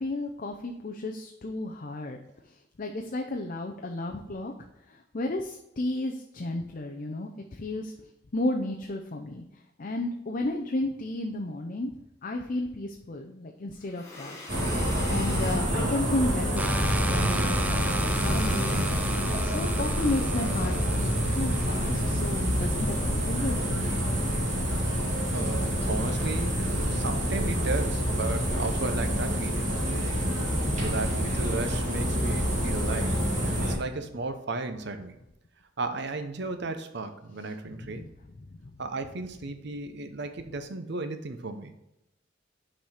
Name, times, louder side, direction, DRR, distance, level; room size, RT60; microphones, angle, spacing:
voice 1, 0.0-2.2 2.8-4.5 4.9-7.9 8.3-9.4 9.8-11.9 12.2-18.8 19.3-24.1 26.8-27.0 28.3-28.4 37.8-38.0 38.6-38.7, left 2 dB, 45° left, 3 dB, 0.6 m, -33 dB
sound 1, 13.9-15.7 17.8-19.6, left 1 dB, 15° left, 1.4 m, -38 dB
sound 2, 14.5-33.7, equal, 40° right, 2.0 m, -27 dB
sound 3, 16.5-23.4, right 1 dB, 10° right, 0.4 m, -35 dB
voice 2, 25.3-30.1 30.8-33.2 33.6-35.2 35.8-38.0 38.8-41.7, right 3 dB, 60° right, 8 dB, 0.7 m, -34 dB
5.9 x 4.9 x 4.2 m, 0.88 s
head